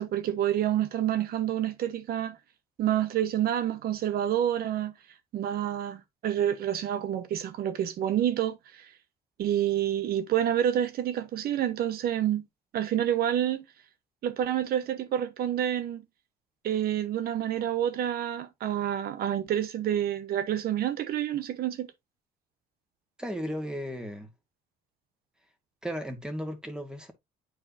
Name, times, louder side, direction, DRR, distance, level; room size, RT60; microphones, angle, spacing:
voice 1, 0.0-2.4 2.8-4.9 5.3-8.6 9.4-12.4 12.7-13.6 14.2-16.0 16.6-21.9, right 11 dB, 65° right, 1.0 m, -28 dB
voice 2, 23.2-24.3 25.8-27.1, equal, 5° right, 1.5 m, -35 dB
8.6 x 4.8 x 2.7 m
cardioid pair, 110°, 17 cm